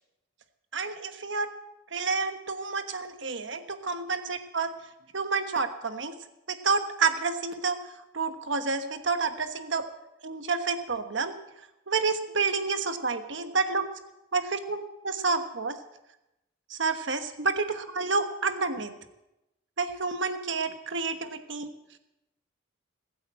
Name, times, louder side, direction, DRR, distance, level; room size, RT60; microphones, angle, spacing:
voice 1, 0.7-1.5 1.9-4.7 5.1-6.1 6.5-7.8 8.1-9.8 10.2-11.3 11.9-13.8 14.3-15.8 16.7-18.9 19.8-21.7, right 4 dB, 60° right, 9 dB, 1.2 m, -29 dB
20.0 x 8.5 x 7.6 m, 0.93 s
head